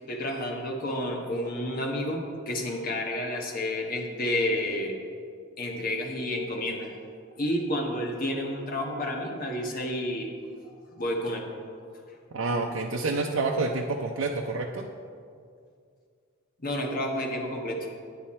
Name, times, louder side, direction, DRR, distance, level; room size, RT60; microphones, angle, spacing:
voice 1, 0.1-5.0 5.6-7.0 7.3-10.3 10.7-11.5 16.6-17.9, left 1 dB, 45° left, 1 dB, 1.3 m, -30 dB
voice 2, 12.3-14.9, right 3 dB, 75° right, 0 dB, 0.6 m, -28 dB
9.4 x 9.2 x 4.3 m, 2.2 s
head